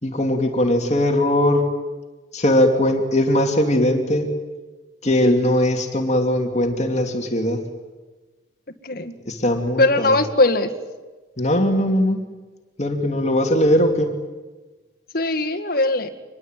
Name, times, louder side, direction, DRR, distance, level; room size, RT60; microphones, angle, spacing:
voice 1, 0.0-1.7 2.3-4.3 5.0-7.6 9.3-10.2 11.4-12.2 12.8-14.1, left 1 dB, 35° left, 4 dB, 2.7 m, -20 dB
voice 2, 8.8-9.1 9.8-10.7 15.1-16.1, left 2 dB, 55° left, 7 dB, 2.0 m, -19 dB
25.5 x 21.5 x 9.2 m, 1.3 s
head